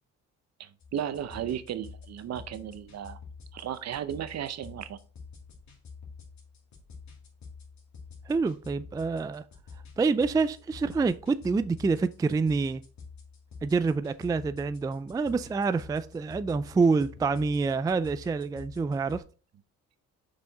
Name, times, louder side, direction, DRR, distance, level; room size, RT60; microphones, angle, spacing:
voice 1, 0.6-3.2 3.5-5.0, right 10 dB, 60° right, 0.7 m, -35 dB
sound 1, 0.8-19.2, left 5 dB, 65° left, 2.5 m, -48 dB
voice 2, 8.3-9.4 10.0-12.8 13.6-19.2, right 4 dB, 15° right, 0.3 m, -27 dB
6.0 x 4.9 x 4.0 m
cardioid pair, 90°, 30 cm